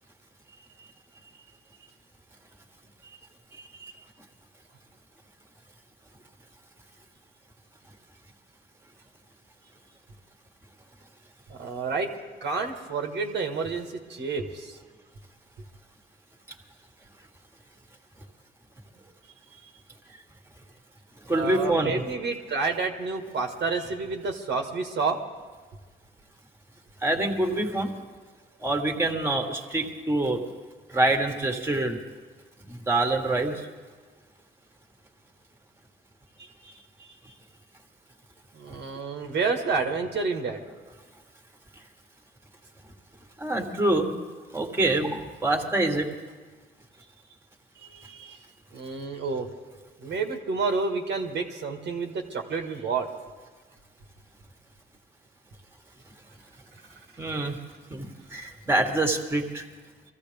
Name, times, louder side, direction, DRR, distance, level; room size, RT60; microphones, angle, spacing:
voice 1, 3.5-3.9 11.5-12.1 12.4-14.8 21.3-25.2 36.4-37.1 38.5-40.6 47.8-48.4 48.7-49.5 50.0-53.1, right 4 dB, 65° right, 3 dB, 1.7 m, -30 dB
voice 2, 21.2-22.0 27.0-27.9 28.6-30.5 30.9-32.0 32.7-33.7 43.4-44.2 44.5-46.2 57.2-57.6 57.9-59.7, right 2 dB, 10° right, 3 dB, 1.8 m, -26 dB
23.5 x 14.5 x 3.5 m, 1.4 s
cardioid pair, 90°, 20 cm